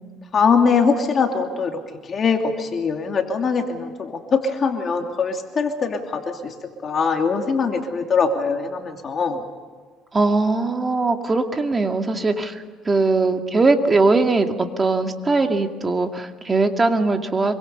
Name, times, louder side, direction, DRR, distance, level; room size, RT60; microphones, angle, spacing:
voice 1, 0.3-6.5 6.8-9.4, left 5 dB, 35° left, 3 dB, 2.7 m, -22 dB
voice 2, 10.1-17.5, right 3 dB, 20° right, 5 dB, 2.2 m, -20 dB
26.0 x 24.0 x 5.6 m, 1.6 s
cardioid pair, 115°, 0 cm